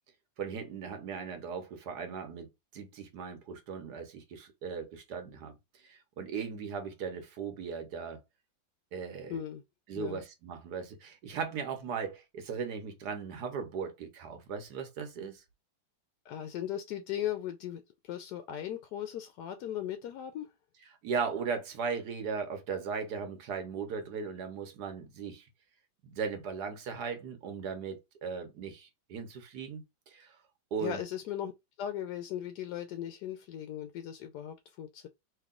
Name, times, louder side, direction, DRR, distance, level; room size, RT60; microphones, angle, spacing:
voice 1, 0.4-5.5 5.8-8.2 8.9-9.4 9.9-15.4 21.0-25.4 26.0-30.4 30.7-31.0, right 5 dB, 65° right, 1.3 m, -38 dB
voice 2, 9.3-9.6 9.9-10.2 16.2-20.5 30.8-31.5 31.8-35.1, left 11 dB, 75° left, 1.0 m, -38 dB
3.1 x 2.9 x 3.6 m
omnidirectional pair, 2.0 m